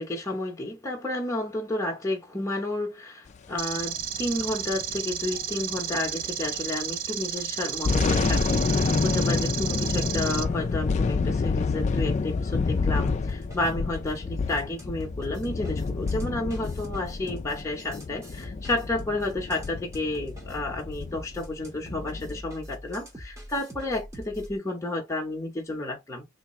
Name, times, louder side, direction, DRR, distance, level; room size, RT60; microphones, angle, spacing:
voice 1, 0.0-26.2, left 2 dB, 15° left, 0.8 m, -31 dB
sound 1, 3.6-10.4, right 9 dB, 40° right, 0.4 m, -33 dB
sound 2, 3.8-6.6 6.9-7.1 7.6-22.4, left 4 dB, 30° left, 0.3 m, -28 dB
sound 3, 13.3-24.6, equal, 15° right, 0.9 m, -43 dB
3.5 x 2.5 x 3.0 m
head